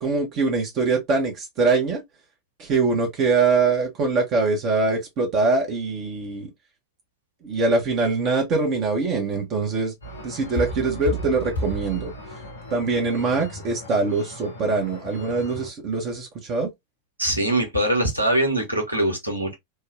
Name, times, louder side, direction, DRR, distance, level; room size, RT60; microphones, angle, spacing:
voice 1, 0.0-2.0 2.6-6.5 7.4-9.9 10.2-12.1 12.7-16.7, right 3 dB, 35° right, 0.9 m, -23 dB
sound 1, 10.0-15.7, equal, 80° left, 1.4 m, -34 dB
voice 2, 17.2-19.5, right 1 dB, 85° right, 1.2 m, -22 dB
3.4 x 2.2 x 3.1 m
figure-of-eight pair, 90°, 0 cm